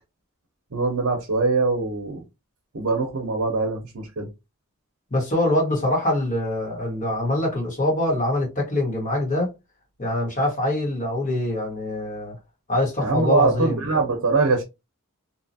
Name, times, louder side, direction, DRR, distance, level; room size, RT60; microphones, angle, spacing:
voice 1, 0.7-2.2 2.7-4.3 13.0-14.6, right 3 dB, 70° right, 0.7 m, -23 dB
voice 2, 5.1-9.5 10.0-12.3 12.7-13.8, left 1 dB, 35° left, 1.3 m, -24 dB
2.8 x 2.4 x 2.6 m
head